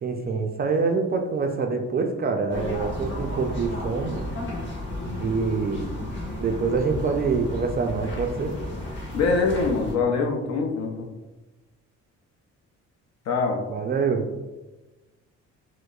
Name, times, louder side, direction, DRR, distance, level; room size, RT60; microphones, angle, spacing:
voice 1, 0.0-4.3 5.2-5.9 6.4-8.5 13.7-14.3, right 4 dB, 35° right, 4 dB, 0.4 m, -25 dB
sound 1, 2.5-9.9, left 1 dB, 40° left, 1.1 m, -33 dB
voice 2, 9.1-11.1 13.3-13.6, left 4 dB, 60° left, 2 dB, 0.7 m, -24 dB
4.5 x 2.0 x 2.4 m, 1.1 s
cardioid pair, 90°, 30 cm